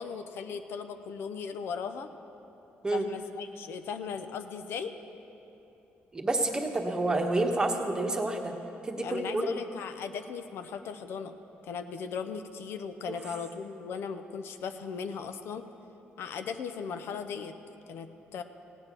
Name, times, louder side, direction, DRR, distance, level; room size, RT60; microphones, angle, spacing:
voice 1, 0.0-2.1 2.9-4.9 9.0-11.3 11.6-15.6 16.2-17.6 17.9-18.4, left 6 dB, 70° left, 9 dB, 0.7 m, -37 dB
voice 2, 6.1-8.5 8.8-9.5, right 2 dB, 20° right, 3 dB, 1.2 m, -28 dB
16.5 x 8.8 x 6.1 m, 2.9 s
cardioid pair, 115°, 4 cm